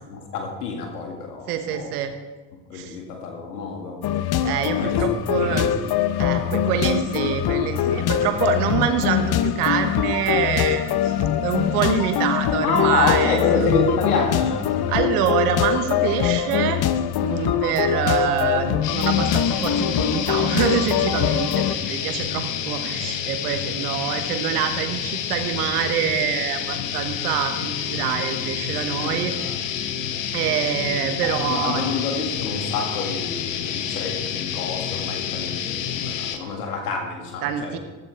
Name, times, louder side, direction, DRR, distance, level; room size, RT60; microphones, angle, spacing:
voice 1, 0.1-1.9 2.7-4.0 4.8-5.0 5.3-5.7 6.3-8.3 12.6-14.7 29.0-29.6 31.4-37.8, left 4 dB, 90° left, 1 dB, 2.1 m, -28 dB
voice 2, 1.5-2.1 2.7-3.0 4.4-5.7 6.2-11.2 11.4-14.0 14.9-16.8 17.2-29.3 30.3-31.8 37.4-37.8, right 9 dB, 85° right, 8 dB, 1.2 m, -25 dB
sound 1, 4.0-21.7, left 10 dB, 55° left, 0.9 m, -23 dB
sound 2, 18.8-36.4, left 9 dB, 70° left, 1.2 m, -29 dB
15.0 x 14.0 x 3.4 m, 1.2 s
hypercardioid pair, 45°, 45 cm